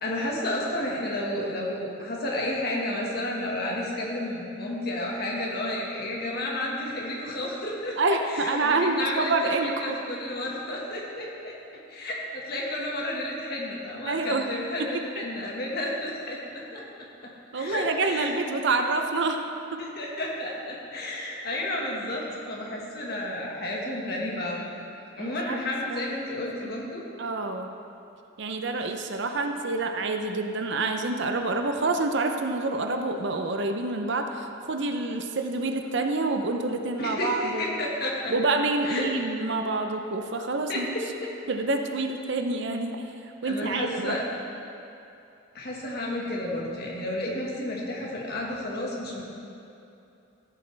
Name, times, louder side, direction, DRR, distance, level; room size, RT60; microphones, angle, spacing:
voice 1, 0.0-8.0 8.3-11.5 11.9-16.8 17.5-18.4 19.8-24.7 25.2-27.0 37.0-38.3 38.8-39.1 40.7-41.0 43.4-44.2 45.5-49.2, left 1 dB, 50° left, -3 dB, 1.7 m, -31 dB
voice 2, 8.0-10.0 14.1-14.5 14.8-15.0 17.5-19.4 19.7-19.8 25.2-25.6 25.9-26.0 26.4-26.8 27.2-27.7 28.4-37.6 38.3-40.9 41.5-43.0 43.2-44.2, right 3 dB, 55° right, 5 dB, 0.6 m, -27 dB
14.5 x 8.4 x 3.4 m, 2.8 s
head